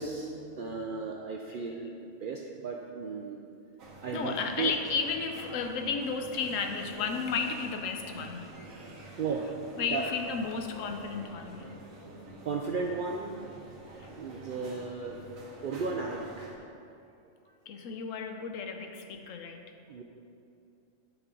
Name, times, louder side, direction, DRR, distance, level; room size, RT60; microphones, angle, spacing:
voice 1, 0.0-3.4 4.0-4.7 9.2-9.5 9.9-10.1 12.4-13.6 14.1-15.2 15.6-16.6 19.9-20.0, right 4 dB, 65° right, 0 dB, 0.5 m, -35 dB
sound 1, 3.8-16.6, right 2 dB, 85° right, 1.4 m, -48 dB
voice 2, 4.1-8.5 9.0-9.2 9.8-11.7 14.0-14.1 17.7-19.7, left 5 dB, 80° left, 5 dB, 1.0 m, -33 dB
9.2 x 5.4 x 3.7 m, 2.7 s
omnidirectional pair, 1.3 m